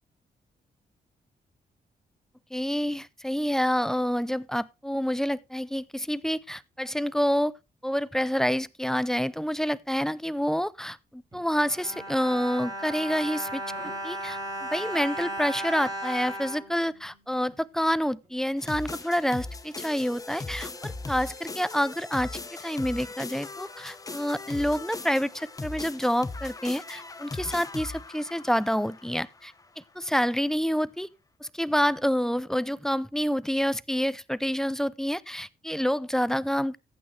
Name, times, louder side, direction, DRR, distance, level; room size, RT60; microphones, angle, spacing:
voice 1, 2.5-7.5 7.8-13.6 14.0-31.1 31.4-36.8, equal, 5° left, 0.5 m, -28 dB
Bowed string instrument, 11.3-17.5 18.2-18.3 18.6-18.8, right 1 dB, 20° right, 6.0 m, -36 dB
sound 1, 18.6-29.7, left 3 dB, 20° left, 0.9 m, -39 dB
14.5 x 8.8 x 3.2 m
cardioid pair, 120°, 17 cm